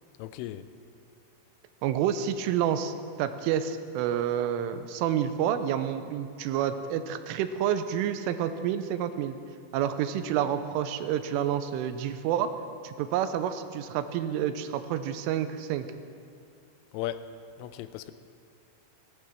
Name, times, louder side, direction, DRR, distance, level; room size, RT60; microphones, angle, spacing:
voice 1, 0.2-0.7 16.9-17.3 17.6-18.1, left 13 dB, 85° left, 12 dB, 3.2 m, -36 dB
voice 2, 1.8-9.4 9.7-12.5 12.8-15.9, right 9 dB, 90° right, 10 dB, 3.2 m, -29 dB
17.5 x 11.5 x 6.1 m, 2.6 s
omnidirectional pair, 5.7 m